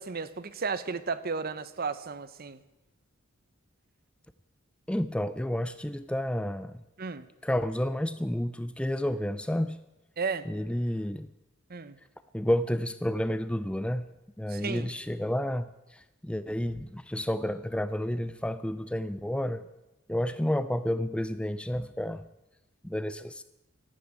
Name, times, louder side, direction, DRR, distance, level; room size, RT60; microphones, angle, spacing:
voice 1, 0.0-2.6 7.0-7.3 10.2-10.5 11.7-12.0 14.5-14.9, right 4 dB, 45° right, 0.9 m, -34 dB
voice 2, 4.9-6.8 7.4-9.8 10.5-11.3 12.3-14.1 14.4-19.7 20.1-22.2 22.8-23.4, left 1 dB, 5° left, 0.4 m, -30 dB
13.5 x 12.0 x 8.9 m
head